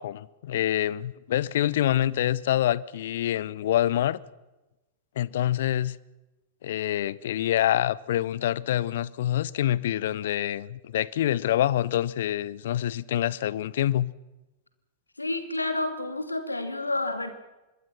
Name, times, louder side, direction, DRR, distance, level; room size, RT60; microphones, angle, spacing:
voice 1, 0.0-4.2 5.2-6.0 6.6-14.1, left 12 dB, 60° left, 0.7 m, -26 dB
voice 2, 15.2-17.3, left 2 dB, 85° left, 2.5 m, -29 dB
25.5 x 22.0 x 5.9 m
figure-of-eight pair, 95°, 0 cm